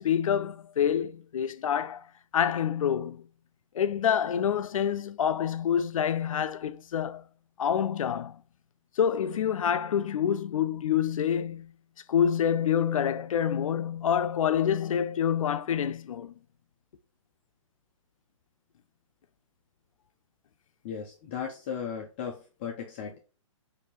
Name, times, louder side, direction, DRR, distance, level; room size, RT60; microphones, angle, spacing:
voice 1, 0.0-2.0 2.3-3.3 3.7-7.2 7.6-8.4 9.0-11.7 12.1-16.3, left 8 dB, 85° left, 0.4 m, -27 dB
voice 2, 20.8-23.2, left 7 dB, 20° left, 0.4 m, -36 dB
4.3 x 2.7 x 3.0 m
hypercardioid pair, 165°, 17 cm